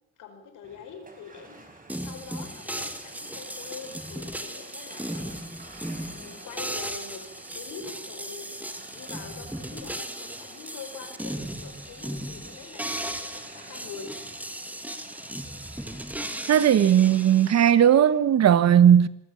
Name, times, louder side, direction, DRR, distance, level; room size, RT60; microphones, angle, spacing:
voice 1, 0.2-7.2 7.5-8.6 8.9-14.1, left 6 dB, 85° left, 4.8 m, -44 dB
sound 1, 0.6-18.2, right 2 dB, 30° right, 4.7 m, -50 dB
sound 2, 1.9-17.7, right 1 dB, 5° right, 1.9 m, -37 dB
voice 2, 16.5-19.1, right 9 dB, 60° right, 1.2 m, -17 dB
26.5 x 15.5 x 7.0 m
cardioid pair, 90°, 30 cm